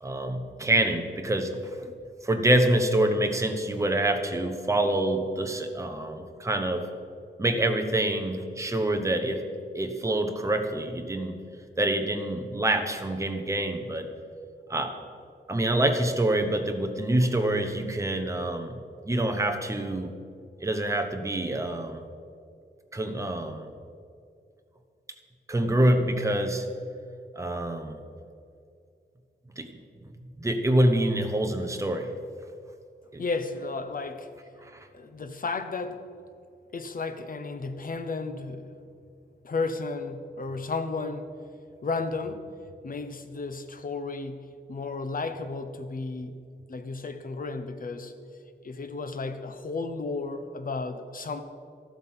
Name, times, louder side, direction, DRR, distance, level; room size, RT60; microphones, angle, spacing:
voice 1, 0.0-1.9 2.2-6.9 7.4-9.5 9.7-11.3 11.8-14.1 14.7-15.0 15.5-18.8 19.0-20.1 20.6-22.0 22.9-23.7 25.5-26.7 27.4-28.0 29.6-29.7 30.4-32.1 33.1-33.2, right 1 dB, 15° right, 5 dB, 1.0 m, -26 dB
voice 2, 33.2-34.3 34.9-36.0 36.7-38.7 39.4-41.3 41.8-42.5 42.8-46.4 46.7-48.1 48.6-51.4, left 3 dB, 50° left, 9 dB, 1.0 m, -33 dB
13.0 x 12.0 x 5.7 m, 2.3 s
wide cardioid pair, 150°, 19 cm